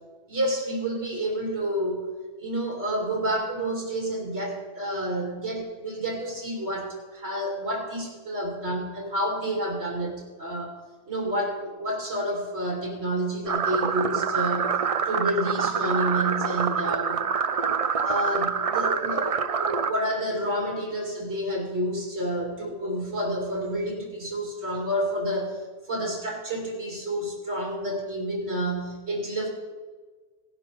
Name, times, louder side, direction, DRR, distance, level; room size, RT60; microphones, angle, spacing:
voice 1, 0.3-2.1 2.4-10.8 11.1-14.8 15.1-17.2 18.0-25.6 25.9-29.5, right 1 dB, 85° right, -2 dB, 2.7 m, -29 dB
sound 1, 13.5-19.9, right 6 dB, 45° right, 0.5 m, -26 dB
18.0 x 11.0 x 3.0 m, 1.4 s
omnidirectional pair, 1.1 m